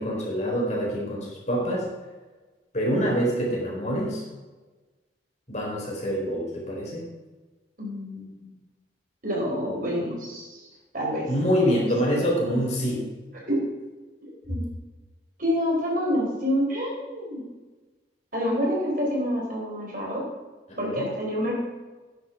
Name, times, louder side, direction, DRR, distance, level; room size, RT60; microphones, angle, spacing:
voice 1, 0.0-1.8 2.7-4.2 5.5-7.0 11.3-13.1 20.7-21.1, equal, 40° left, -3 dB, 4.3 m, -26 dB
voice 2, 7.8-8.5 9.2-10.6 10.9-11.3 11.7-11.8 13.5-13.6 14.4-14.6 15.4-17.4 18.3-20.2 20.8-21.5, equal, 50° right, -3 dB, 4.6 m, -27 dB
10.0 x 9.4 x 6.1 m, 1.3 s
head